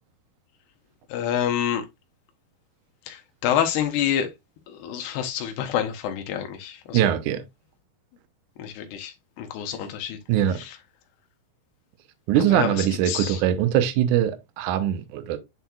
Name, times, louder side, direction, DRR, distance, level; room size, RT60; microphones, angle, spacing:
voice 1, 1.1-1.9 3.1-4.3 4.7-7.1 8.6-10.2 10.5-10.8 12.4-13.4, left 9 dB, 85° left, 3.0 m, -28 dB
voice 2, 6.9-7.4 10.3-10.6 12.3-15.4, right 11 dB, 75° right, 1.9 m, -22 dB
9.6 x 4.5 x 2.4 m
omnidirectional pair, 4.6 m